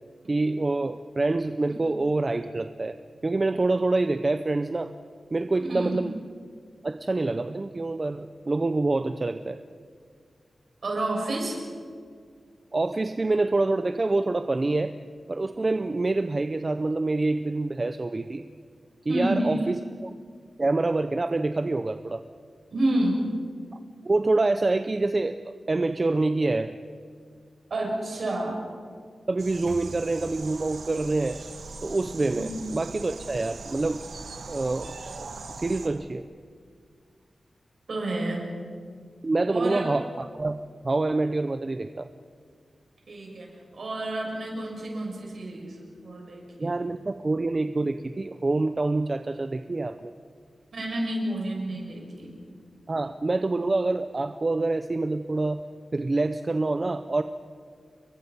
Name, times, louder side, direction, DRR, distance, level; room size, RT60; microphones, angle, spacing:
voice 1, 0.3-2.9 3.2-4.9 5.3-6.1 6.8-9.6 12.7-14.9 15.3-18.5 19.1-20.1 20.6-22.2 24.0-26.7 29.3-31.4 31.8-34.0 34.5-35.3 35.5-36.3 39.2-42.1 46.6-50.1 52.9-55.6 55.9-57.2, right 2 dB, 30° right, 9 dB, 0.6 m, -26 dB
voice 2, 5.6-6.0 10.8-11.6 19.1-19.6 22.7-23.2 27.7-28.6 32.3-32.6 37.9-38.4 39.4-39.9 43.1-43.5 43.7-46.8 50.7-52.3, right 1 dB, 55° right, 0 dB, 6.6 m, -29 dB
sound 1, 29.4-35.9, right 4 dB, 75° right, 2.2 m, -41 dB
30.0 x 22.5 x 5.5 m, 2.1 s
wide cardioid pair, 160°, 0 cm